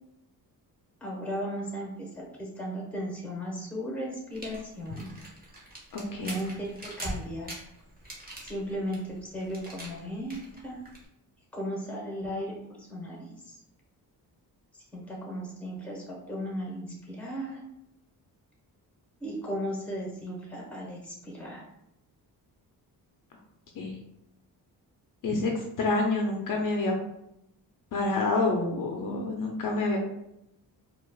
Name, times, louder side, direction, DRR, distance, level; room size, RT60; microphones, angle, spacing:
voice 1, 1.0-5.1 6.2-7.5 8.4-10.8 11.5-13.5 14.9-17.6 19.2-21.6, equal, 5° left, -1 dB, 1.1 m, -36 dB
sound 1, 4.3-11.0, right 1 dB, 20° right, 1.1 m, -42 dB
voice 2, 5.9-6.4 23.8-24.0 25.2-26.9 27.9-30.0, left 3 dB, 55° left, 1 dB, 0.6 m, -28 dB
4.3 x 2.4 x 2.3 m, 0.82 s
cardioid pair, 100°, 40 cm